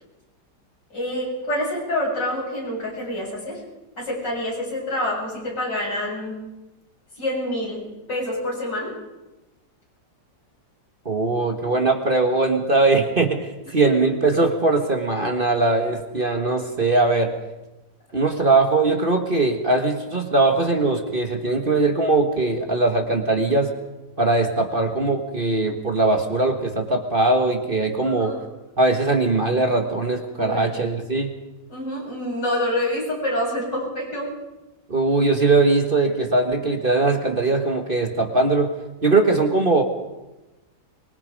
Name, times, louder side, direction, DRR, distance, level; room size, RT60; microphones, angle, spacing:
voice 1, 0.9-3.6 4.0-6.4 7.2-7.8 8.1-8.9 28.0-28.4 30.4-30.7 31.7-34.3, left 1 dB, 85° left, -4 dB, 8.8 m, -27 dB
voice 2, 11.0-17.3 18.1-23.7 24.2-28.3 28.8-31.3 34.9-38.7 39.0-39.8, right 3 dB, 30° right, 4 dB, 1.6 m, -20 dB
23.5 x 21.5 x 5.3 m, 1.0 s
omnidirectional pair, 1.8 m